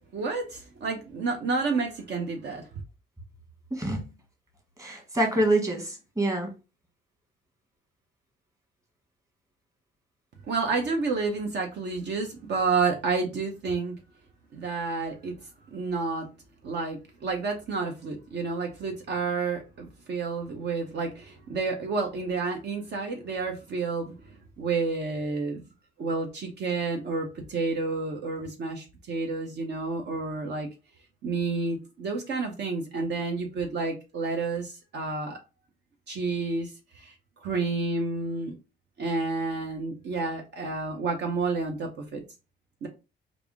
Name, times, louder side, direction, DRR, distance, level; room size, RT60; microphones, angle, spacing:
voice 1, 0.1-2.6 10.5-13.9 14.5-15.4 15.7-16.3 16.6-24.1 24.6-25.6 26.0-30.7 31.2-35.4 36.1-37.1 37.4-38.5 39.0-42.2 42.8-42.9, right 4 dB, 60° right, 0.8 m, -30 dB
voice 2, 3.7-4.0 4.8-6.5, right 1 dB, 15° right, 1.4 m, -26 dB
3.4 x 2.5 x 3.5 m
cardioid pair, 90°, 20 cm